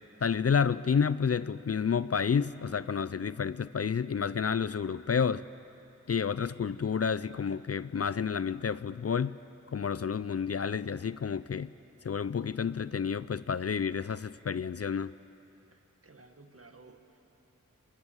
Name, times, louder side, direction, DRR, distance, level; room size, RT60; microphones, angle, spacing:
voice 1, 0.2-5.4 6.1-9.4 9.7-11.7 12.0-15.1, left 6 dB, 50° left, 16 dB, 0.5 m, -30 dB
voice 2, 15.7-17.2, right 3 dB, 45° right, 6 dB, 1.8 m, -56 dB
22.0 x 22.0 x 8.0 m, 2.9 s
wide cardioid pair, 60°, 32 cm